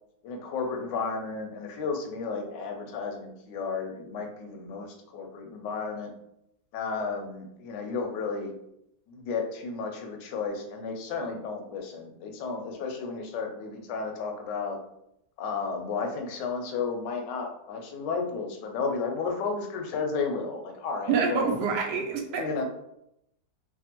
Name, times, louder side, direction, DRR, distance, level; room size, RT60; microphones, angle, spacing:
voice 1, 0.2-4.9 5.1-6.1 6.7-8.5 9.1-14.8 15.4-21.6 22.3-22.6, left 4 dB, 85° left, 3 dB, 1.2 m, -33 dB
voice 2, 21.1-22.6, right 5 dB, 80° right, 3 dB, 1.2 m, -27 dB
3.3 x 2.1 x 2.8 m, 0.80 s
omnidirectional pair, 1.8 m